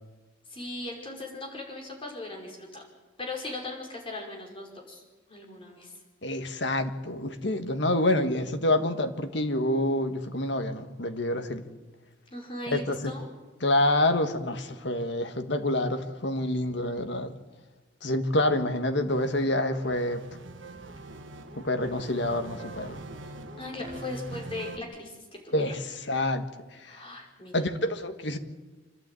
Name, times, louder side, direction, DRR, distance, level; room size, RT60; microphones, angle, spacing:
voice 1, 0.5-2.8 3.2-5.0 5.3-5.9 12.3-13.3 23.6-25.8 26.9-27.6, left 2 dB, 25° left, 5.3 m, -38 dB
voice 2, 6.2-11.6 12.7-13.0 13.6-17.3 18.0-20.2 21.6-23.0 25.5-26.5 26.8-27.0 27.5-28.4, left 1 dB, 60° left, 1.6 m, -27 dB
sound 1, 19.1-24.8, right 2 dB, 70° right, 1.6 m, -43 dB
27.0 x 12.5 x 9.1 m
head